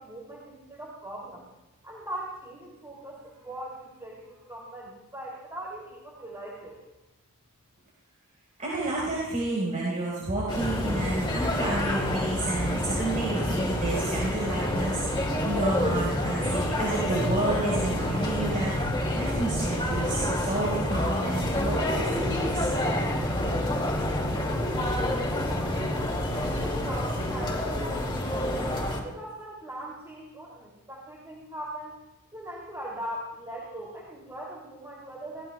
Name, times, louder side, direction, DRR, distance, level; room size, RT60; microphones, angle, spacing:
voice 1, 0.0-1.5 1.8-6.8 24.9-28.5 29.0-32.0 32.3-35.5, right 1 dB, 15° right, -4 dB, 2.8 m, -40 dB
voice 2, 8.6-22.7, right 2 dB, 35° right, -6 dB, 4.3 m, -30 dB
sound 1, 10.5-29.0, left 1 dB, 20° left, 2.3 m, -28 dB
22.0 x 17.0 x 2.3 m, 1.0 s
head